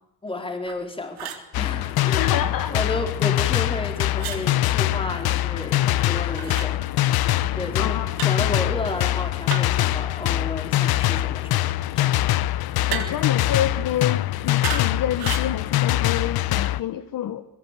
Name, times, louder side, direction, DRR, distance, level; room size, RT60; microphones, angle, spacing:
voice 1, 0.2-6.8 7.6-12.2, left 2 dB, 15° left, 4.6 m, -32 dB
sound 1, 0.7-0.8 1.2-1.5 4.2-4.4 6.4-6.7 8.2-8.4 9.5-9.9 12.9-13.3 14.6-14.9 15.2-15.5, right 9 dB, 85° right, 3.7 m, -32 dB
sound 2, 1.5-16.8, left 14 dB, 90° left, 1.1 m, -23 dB
voice 2, 2.2-2.8 7.8-8.1 8.4-8.5 12.9-17.5, left 10 dB, 65° left, 1.5 m, -28 dB
24.0 x 23.0 x 8.5 m
cardioid pair, 165°, 36 cm